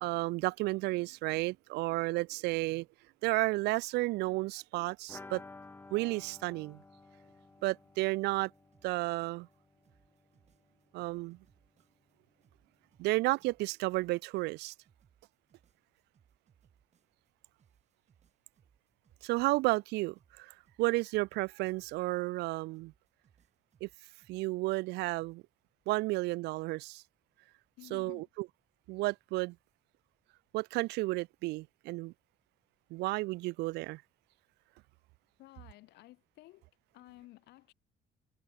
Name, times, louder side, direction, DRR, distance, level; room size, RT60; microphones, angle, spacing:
voice 1, 0.0-2.9 3.2-5.4 5.9-6.8 7.6-8.5 8.8-9.5 10.9-11.4 13.0-14.7 19.2-22.9 23.8-23.9 24.3-25.4 25.9-27.0 27.9-28.5 28.9-29.6 30.5-32.1 32.9-34.0, right 21 dB, 85° right, 0.4 m, -32 dB
sound 1, 5.1-10.7 10.9-11.0 11.3-11.4, left 3 dB, 10° left, 0.6 m, -54 dB
sound 2, 8.2-9.6 9.8-12.1 12.4-17.3 17.6-19.9 20.2-22.5 22.7-25.4, right 8 dB, 40° right, 2.8 m, -70 dB
voice 2, 27.8-28.3 35.4-36.7 36.9-37.7, left 18 dB, 85° left, 2.2 m, -54 dB
cardioid pair, 110°, 17 cm